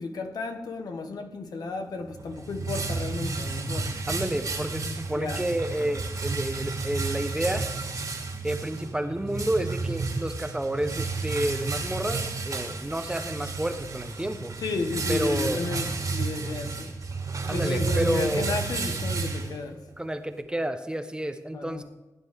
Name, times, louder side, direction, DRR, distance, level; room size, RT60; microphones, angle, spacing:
voice 1, 0.0-3.9 5.1-5.4 14.6-16.9 17.5-19.8 21.5-21.8, left 3 dB, 90° left, 1.3 m, -32 dB
sound 1, 2.1-19.9, right 3 dB, 65° right, 2.4 m, -32 dB
voice 2, 4.1-7.6 8.4-14.5 15.1-15.6 17.5-18.5 20.0-21.8, right 1 dB, 15° right, 1.0 m, -30 dB
16.5 x 9.3 x 3.6 m
wide cardioid pair, 85°, 7 cm